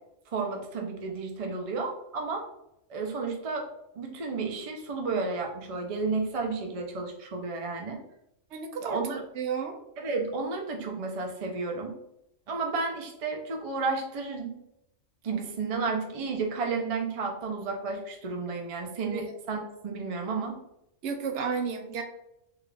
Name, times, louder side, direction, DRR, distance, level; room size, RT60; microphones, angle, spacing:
voice 1, 0.3-2.4 2.9-3.7 4.0-8.0 8.8-9.2 10.0-12.0 12.5-14.6 15.2-20.6, right 4 dB, 45° right, 2 dB, 0.5 m, -32 dB
voice 2, 8.5-9.8 19.1-19.3 21.0-22.0, right 5 dB, 70° right, 5 dB, 0.8 m, -32 dB
3.7 x 2.4 x 3.2 m, 0.82 s
omnidirectional pair, 1.3 m